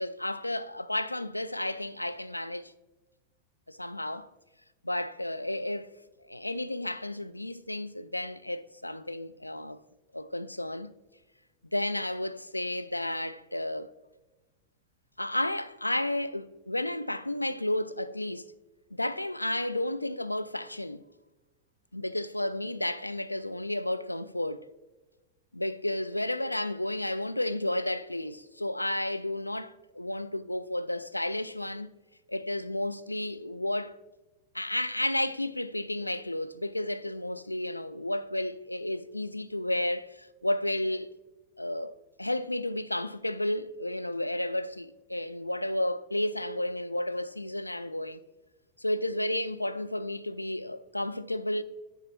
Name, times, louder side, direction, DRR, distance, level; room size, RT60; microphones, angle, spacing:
voice 1, 0.0-2.7 3.7-4.3 4.8-5.9 6.3-9.8 10.1-10.9 11.7-13.9 15.2-18.5 18.9-21.0 21.9-24.6 25.5-31.9 32.3-33.9 34.5-41.1 41.6-41.9 42.2-48.2 48.8-51.6, left 1 dB, 85° left, 0.4 m, -32 dB
9.7 x 3.7 x 5.7 m
figure-of-eight pair, 90°, 0 cm